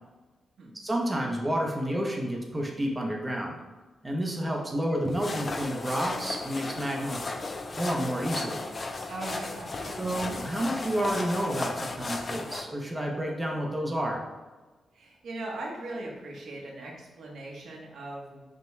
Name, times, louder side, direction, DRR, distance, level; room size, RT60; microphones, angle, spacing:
voice 1, 0.7-3.6 4.0-7.2 7.7-8.6 10.0-14.2, equal, 15° right, 0 dB, 0.6 m, -30 dB
sound 1, 5.1-12.7, left 3 dB, 35° left, 0.4 m, -35 dB
voice 2, 9.1-10.0 14.9-18.5, right 2 dB, 80° right, -2 dB, 0.9 m, -39 dB
5.4 x 2.2 x 3.1 m, 1.2 s
cardioid pair, 95°, 0 cm